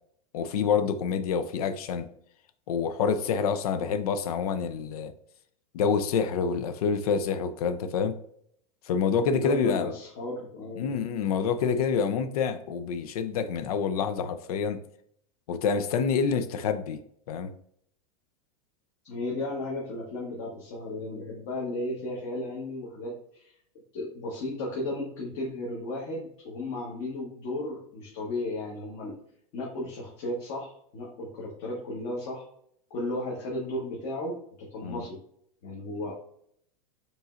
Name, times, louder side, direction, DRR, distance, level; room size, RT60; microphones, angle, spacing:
voice 1, 0.3-2.1 2.7-5.1 5.7-8.1 8.9-9.9 10.8-14.8 15.5-17.0 17.3-17.5 34.8-35.0, left 6 dB, 80° left, 11 dB, 0.6 m, -27 dB
voice 2, 9.2-10.9 19.0-23.5 23.9-29.2 29.5-32.5 32.9-35.2 35.6-36.1, left 1 dB, 50° left, -4 dB, 1.2 m, -34 dB
5.2 x 3.1 x 2.4 m, 0.68 s
supercardioid pair, 155°, 19 cm